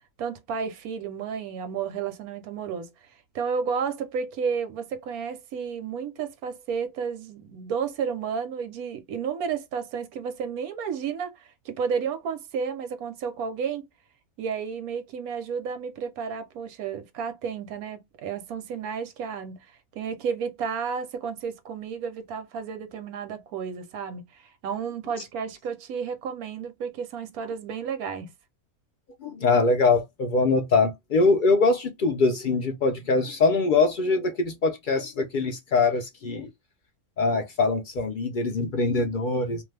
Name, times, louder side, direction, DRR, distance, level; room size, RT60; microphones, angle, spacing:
voice 1, 0.2-2.9 3.3-13.9 14.4-19.6 20.0-28.3, right 6 dB, 80° right, 1.2 m, -32 dB
voice 2, 29.2-36.5 37.2-39.6, left 3 dB, 80° left, 0.4 m, -23 dB
2.6 x 2.4 x 3.2 m
omnidirectional pair, 1.5 m